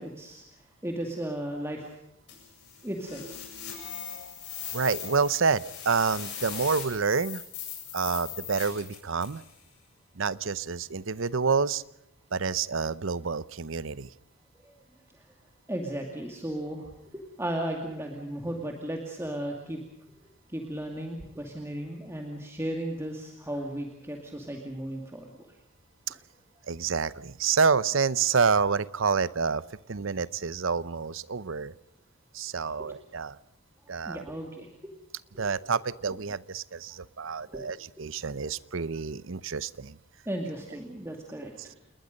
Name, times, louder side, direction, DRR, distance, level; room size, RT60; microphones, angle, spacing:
voice 1, 0.0-1.9 2.8-3.4 14.6-14.7 15.1-15.3 15.7-19.9 20.5-25.3 32.8-32.9 34.0-34.7 35.3-35.5 37.5-37.7 40.3-41.7, right 1 dB, 10° right, 1 dB, 2.4 m, -35 dB
sound 1, 2.3-9.5, left 9 dB, 55° left, 8.0 m, -40 dB
voice 2, 4.7-7.4 7.9-9.4 10.2-11.8 12.3-14.1 26.1-26.2 26.7-29.6 29.9-31.7 32.3-33.4 33.9-34.2 35.4-40.0, right 5 dB, 70° right, 18 dB, 0.7 m, -28 dB
29.0 x 20.5 x 5.3 m, 0.84 s
head